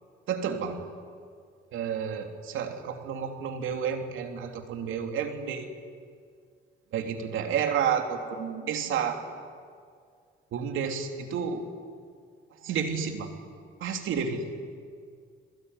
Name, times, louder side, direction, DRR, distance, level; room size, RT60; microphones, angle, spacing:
voice 1, 0.3-0.8 1.7-5.8 6.9-9.2 10.5-11.6 12.6-13.3 13.8-14.4, right 7 dB, 85° right, 5 dB, 3.1 m, -30 dB
27.5 x 21.5 x 9.8 m, 2.1 s
cardioid pair, 90°, 20 cm